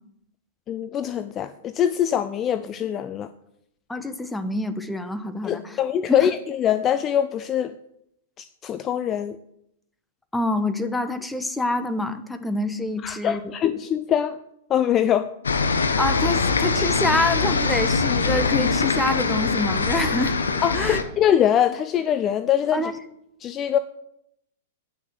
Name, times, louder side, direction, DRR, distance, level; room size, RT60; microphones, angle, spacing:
voice 1, 0.7-3.3 5.4-7.7 8.4-9.4 13.0-14.4 14.7-15.3 20.6-22.9 23.4-23.8, left 10 dB, 30° left, 13 dB, 0.5 m, -23 dB
voice 2, 3.9-5.8 10.3-13.4 16.0-20.4 20.7-21.0 22.7-23.0, left 2 dB, 5° left, 10 dB, 1.0 m, -26 dB
sound 1, 15.4-21.0, left 4 dB, 85° left, 1.1 m, -23 dB
9.4 x 6.2 x 7.7 m, 0.77 s
hypercardioid pair, 110°, 0 cm